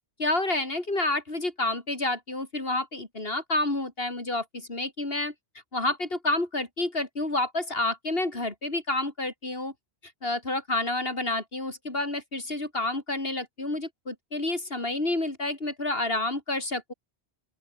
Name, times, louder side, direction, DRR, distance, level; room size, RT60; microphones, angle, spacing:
voice 1, 0.2-5.3 5.7-9.7 10.2-16.9, left 2 dB, 60° left, 4.2 m, -29 dB
open air
omnidirectional pair, 1.1 m